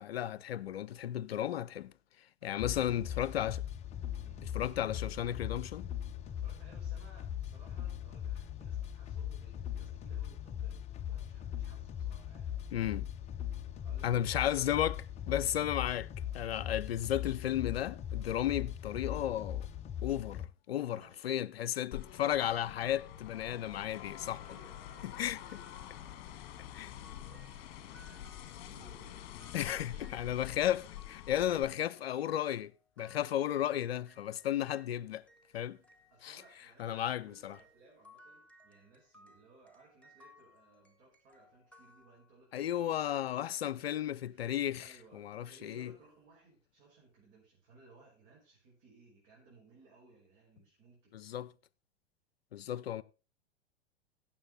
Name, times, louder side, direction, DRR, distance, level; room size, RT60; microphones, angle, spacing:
voice 1, 0.0-1.9 2.4-3.6 4.5-5.9 12.7-13.1 14.0-16.1 16.3-19.7 20.0-24.4 25.0-25.6 26.8-26.9 29.5-32.7 33.0-35.2 35.5-35.8 36.2-36.4 36.8-37.6 42.5-45.9 51.1-51.5 52.5-53.0, left 11 dB, 65° left, 0.6 m, -34 dB
voice 2, 2.4-3.2 4.2-4.4 6.3-12.6 13.8-14.5 20.9-21.3 24.4-29.2 29.6-30.2 31.5-32.0 36.1-43.8 44.2-44.5 44.8-51.1, right 3 dB, 40° right, 5.5 m, -62 dB
sound 1, 2.6-20.5, left 10 dB, 20° left, 0.6 m, -40 dB
sound 2, 21.9-31.6, left 12 dB, 40° left, 1.6 m, -47 dB
sound 3, 24.5-34.9 35.3-42.6, left 2 dB, 5° left, 1.4 m, -63 dB
16.0 x 7.4 x 4.0 m
figure-of-eight pair, 95°, 33 cm